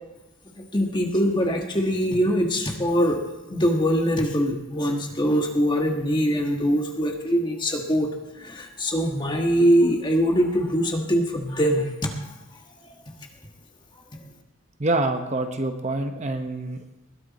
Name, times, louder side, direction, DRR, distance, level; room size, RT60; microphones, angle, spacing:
voice 1, 0.6-3.2 3.5-8.1 8.4-12.1 12.8-12.9, equal, 20° left, 2 dB, 1.5 m, -23 dB
voice 2, 14.8-16.8, right 2 dB, 35° right, 6 dB, 1.0 m, -26 dB
20.5 x 11.5 x 4.2 m, 1.0 s
head